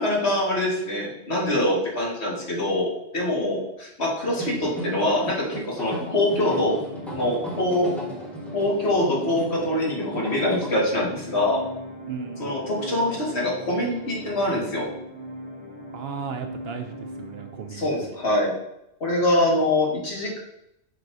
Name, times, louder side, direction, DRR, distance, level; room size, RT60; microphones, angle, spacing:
voice 1, 0.0-6.8 7.1-7.9 8.5-11.6 12.4-14.9 17.7-18.5 19.0-20.4, left 1 dB, 60° left, -4 dB, 2.1 m, -24 dB
sound 1, 4.3-10.8, right 1 dB, ahead, 1.2 m, -36 dB
sound 2, 6.5-18.4, equal, 20° right, 2.1 m, -39 dB
voice 2, 12.1-12.6 15.9-18.2, right 6 dB, 65° right, 5 dB, 0.7 m, -35 dB
7.9 x 4.5 x 2.7 m, 0.81 s
omnidirectional pair, 1.3 m